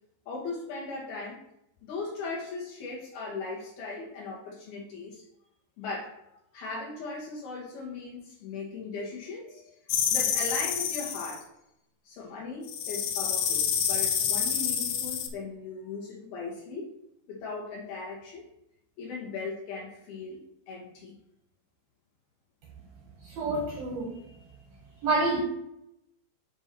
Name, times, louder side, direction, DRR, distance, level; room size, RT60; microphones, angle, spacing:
voice 1, 0.3-1.4 1.9-5.2 5.8-6.2 6.5-9.8 10.1-11.5 12.1-16.9 17.3-18.4 19.0-20.4 20.7-21.2, left 3 dB, 70° left, -3 dB, 2.4 m, -38 dB
sound 1, 9.9-11.4 12.7-15.3, left 8 dB, 85° left, 2.2 m, -28 dB
voice 2, 23.2-24.2 25.0-25.4, right 2 dB, 80° right, -1 dB, 2.1 m, -28 dB
7.3 x 2.6 x 5.7 m, 0.81 s
omnidirectional pair, 5.2 m